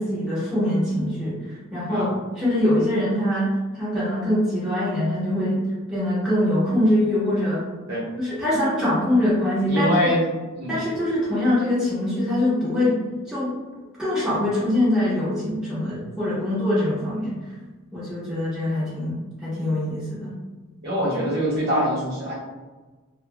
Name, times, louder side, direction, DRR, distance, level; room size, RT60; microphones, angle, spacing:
voice 1, 0.0-5.6 5.9-7.6 8.2-9.9 10.7-13.6 14.0-17.5 17.9-20.4, left 1 dB, 5° right, -11 dB, 0.7 m, -23 dB
voice 2, 9.7-10.2 10.6-10.8 20.8-22.4, equal, 45° right, -6 dB, 0.9 m, -24 dB
2.6 x 2.1 x 2.6 m, 1.3 s
head